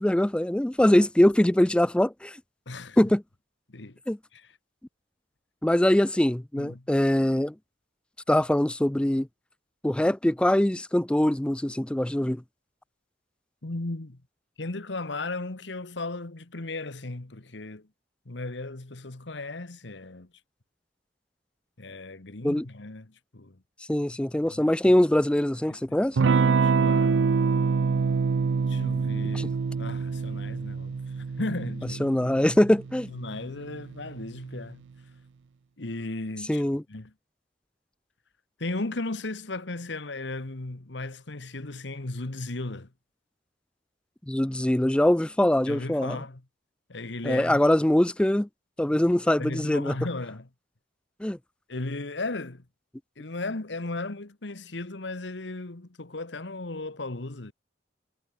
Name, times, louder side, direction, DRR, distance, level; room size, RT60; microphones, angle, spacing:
voice 1, 0.0-2.4 3.0-3.2 4.1-4.2 5.6-7.5 8.3-9.3 9.8-12.4 22.4-22.7 23.9-26.2 29.3-29.5 32.0-33.1 36.5-36.8 44.3-46.2 47.2-48.5 48.8-50.0 51.2-51.4, left 1 dB, 5° left, 0.4 m, -23 dB
voice 2, 2.7-3.0 3.7-4.0 4.3-4.5 6.5-6.9 13.6-14.2 14.6-17.9 18.2-20.3 21.8-23.6 24.5-24.7 25.7-27.3 28.7-32.1 33.1-34.8 35.8-37.1 38.6-42.9 45.7-46.4 46.9-47.6 49.4-50.5 51.7-52.6 53.2-57.5, left 2 dB, 70° left, 1.5 m, -36 dB
Electric guitar / Strum, 26.2-34.5, right 5 dB, 75° right, 0.4 m, -26 dB
head